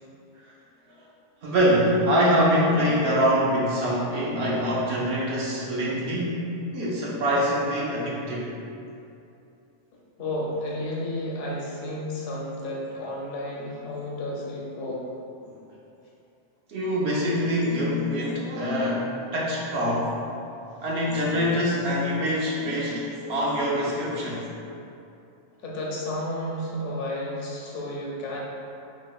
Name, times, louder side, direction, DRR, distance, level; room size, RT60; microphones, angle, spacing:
voice 1, 1.4-8.5 15.5-15.6 16.7-20.2 20.8-24.4, equal, 65° right, -5 dB, 0.8 m, -24 dB
voice 2, 10.2-15.1 25.6-28.4, left 1 dB, 85° left, -3 dB, 1.0 m, -32 dB
4.4 x 2.0 x 2.2 m, 2.7 s
omnidirectional pair, 1.3 m